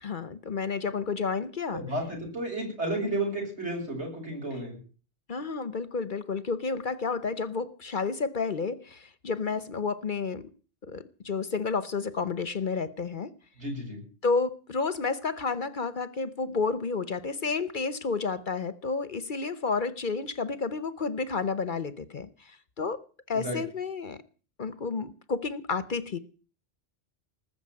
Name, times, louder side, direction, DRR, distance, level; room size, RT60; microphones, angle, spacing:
voice 1, 0.0-1.8 5.3-10.5 10.8-13.3 14.2-24.2 24.6-26.2, left 4 dB, 50° left, 1.0 m, -31 dB
voice 2, 1.7-4.8 13.6-14.0 23.4-23.6, right 1 dB, 75° right, 7.8 m, -32 dB
20.0 x 7.0 x 9.7 m
omnidirectional pair, 1.1 m